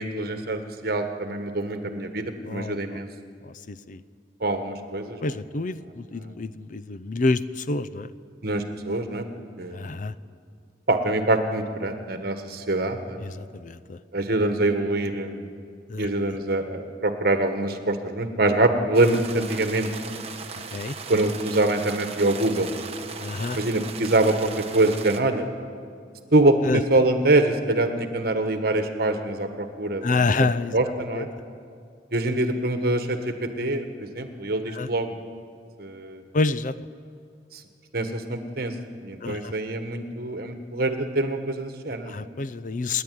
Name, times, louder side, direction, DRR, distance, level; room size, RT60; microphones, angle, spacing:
voice 1, 0.0-3.1 4.4-5.2 8.4-9.2 9.6-10.0 10.9-13.2 14.1-15.5 16.0-19.9 21.1-22.7 23.5-25.4 26.3-30.2 30.7-31.3 32.1-33.2 33.6-35.2 35.8-36.2 37.5-37.6 37.9-38.7 39.0-42.2, right 2 dB, 60° right, 7 dB, 1.5 m, -24 dB
voice 2, 2.4-3.0 3.4-4.0 5.2-8.1 9.7-10.1 13.2-14.0 15.9-16.1 20.7-21.0 23.2-23.6 26.6-26.8 30.0-30.8 31.1-31.3 34.7-34.9 36.3-36.7 39.2-39.5 42.1-43.0, left 3 dB, 50° left, 15 dB, 0.6 m, -27 dB
sound 1, 18.9-25.2, right 5 dB, 35° right, 1.2 m, -38 dB
29.0 x 10.0 x 9.5 m, 2.3 s
head